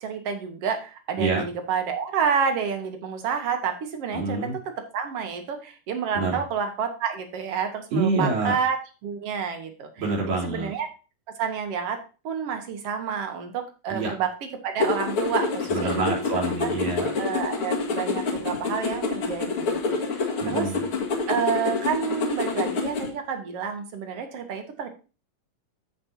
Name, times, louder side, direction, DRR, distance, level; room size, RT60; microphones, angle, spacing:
voice 1, 0.0-8.8 9.0-9.9 10.3-10.9 11.4-12.0 12.2-14.3 14.6-16.0 16.3-16.7 17.2-20.0 20.5-20.7 21.3-24.9, right 6 dB, 55° right, 5 dB, 1.9 m, -29 dB
voice 2, 4.1-4.6 6.1-6.4 7.9-8.6 10.0-10.7 13.9-14.1 15.7-17.1 20.4-20.8, right 3 dB, 80° right, -5 dB, 5.4 m, -26 dB
sound 1, 14.8-23.1, left 4 dB, 50° left, 2.1 m, -27 dB
15.0 x 5.3 x 2.8 m, 0.33 s
omnidirectional pair, 3.9 m